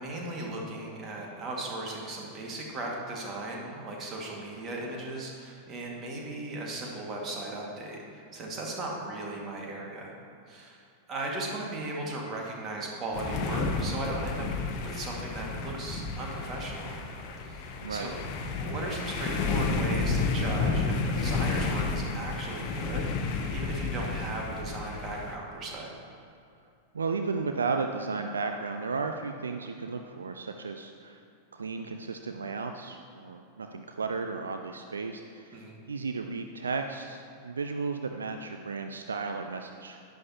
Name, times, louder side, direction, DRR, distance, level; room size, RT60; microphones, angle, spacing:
voice 1, 0.0-10.1 10.5-10.8 11.1-14.5 14.8-17.0 17.4-18.2 18.5-25.9 35.5-35.8, right 2 dB, 30° right, -2 dB, 2.0 m, -37 dB
sound 1, 13.1-25.3, left 4 dB, 40° left, 0.9 m, -31 dB
voice 2, 26.9-31.2 31.5-40.0, right 4 dB, 70° right, 5 dB, 0.4 m, -34 dB
11.0 x 10.5 x 2.9 m, 2.5 s
figure-of-eight pair, 90°, 0 cm